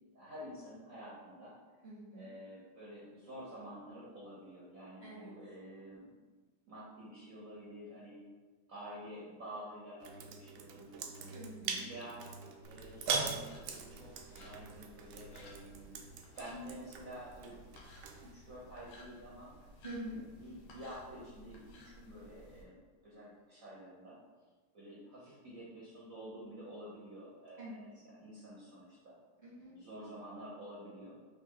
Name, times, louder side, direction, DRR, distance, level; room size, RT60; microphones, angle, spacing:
voice 1, 0.1-1.5 2.1-6.1 6.7-8.2 8.7-11.4 11.9-12.2 12.7-16.0 16.4-17.6 18.3-19.5 20.4-24.2 24.7-29.1 29.6-31.2, equal, 55° right, -6 dB, 1.1 m, -49 dB
voice 2, 1.8-2.3 5.0-5.3 11.3-11.9 19.8-20.2 27.6-27.8 29.4-29.7, right 1 dB, 10° left, -8 dB, 1.2 m, -46 dB
sound 1, 10.0-18.3, right 5 dB, 85° right, 1.4 m, -42 dB
sound 2, 12.6-22.6, equal, 90° left, 1.5 m, -57 dB
4.0 x 3.4 x 3.7 m, 1.3 s
omnidirectional pair, 2.1 m